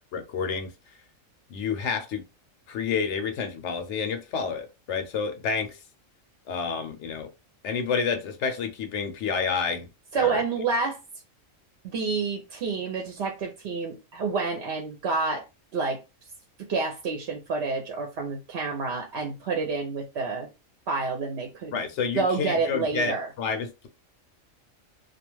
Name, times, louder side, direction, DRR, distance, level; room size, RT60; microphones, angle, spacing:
voice 1, 0.1-0.7 1.5-2.2 2.7-5.8 6.5-7.3 7.6-9.9 10.1-10.4 21.7-23.9, left 5 dB, 70° left, 0.8 m, -29 dB
voice 2, 10.1-11.0 11.9-15.4 15.7-16.0 16.7-20.5 20.9-21.8 22.2-23.3, right 4 dB, 60° right, 0.8 m, -28 dB
2.3 x 2.3 x 3.0 m
omnidirectional pair, 1.4 m